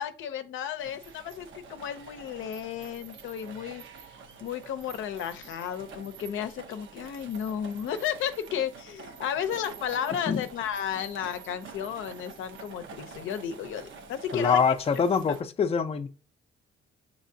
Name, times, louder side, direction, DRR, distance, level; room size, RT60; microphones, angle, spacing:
voice 1, 0.0-4.1 4.4-14.6, left 9 dB, 80° left, 0.6 m, -33 dB
sound 1, 0.8-15.4, right 5 dB, 75° right, 0.8 m, -47 dB
voice 2, 14.3-16.1, left 6 dB, 30° left, 0.5 m, -24 dB
6.4 x 2.9 x 2.6 m
cardioid pair, 90°, 20 cm